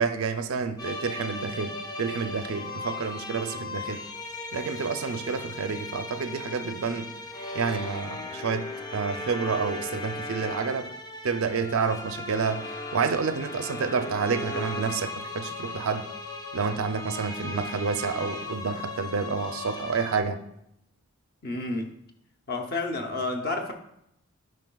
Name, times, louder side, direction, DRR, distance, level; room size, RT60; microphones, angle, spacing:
voice 1, 0.0-4.0 4.5-7.1 7.5-10.9 11.2-16.1 16.5-20.4, right 5 dB, 80° right, 0.5 m, -29 dB
sound 1, 0.8-20.2, left 2 dB, 20° left, 0.4 m, -37 dB
voice 2, 21.4-21.9 22.5-23.7, left 2 dB, 45° left, 0.7 m, -30 dB
9.4 x 5.3 x 2.3 m
head